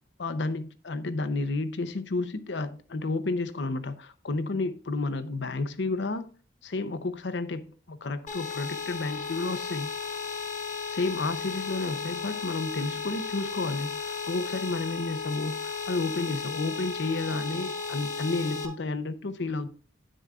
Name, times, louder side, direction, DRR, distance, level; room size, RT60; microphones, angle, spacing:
voice 1, 0.2-6.3 6.6-9.9 10.9-19.7, left 3 dB, 75° left, 0.7 m, -31 dB
sound 1, 8.3-18.7, left 5 dB, 45° left, 1.2 m, -35 dB
10.0 x 7.8 x 2.4 m
head